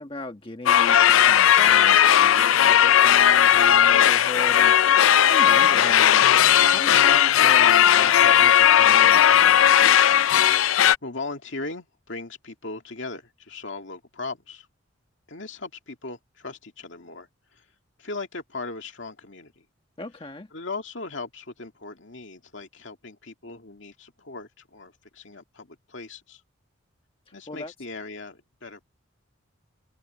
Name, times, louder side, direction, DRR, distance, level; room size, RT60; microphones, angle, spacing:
voice 1, 0.0-4.7 5.3-6.3 6.5-9.8 20.0-20.5 27.5-27.7, left 2 dB, 25° left, 1.4 m, -37 dB
sound 1, 0.7-11.0, left 10 dB, 80° left, 0.4 m, -17 dB
voice 2, 11.0-14.7 15.3-17.7 18.0-19.7 20.5-26.4 27.3-28.8, left 3 dB, 65° left, 2.4 m, -38 dB
head